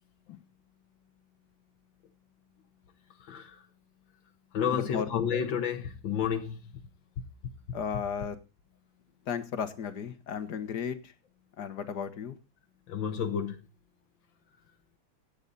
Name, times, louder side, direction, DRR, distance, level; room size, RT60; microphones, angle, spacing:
voice 1, 3.2-3.6 4.5-6.7 12.9-13.6, left 8 dB, 80° left, 1.9 m, -31 dB
voice 2, 4.7-5.1 7.7-8.4 9.3-11.1 11.6-12.4, left 7 dB, 60° left, 1.9 m, -34 dB
15.5 x 9.1 x 4.0 m
omnidirectional pair, 2.0 m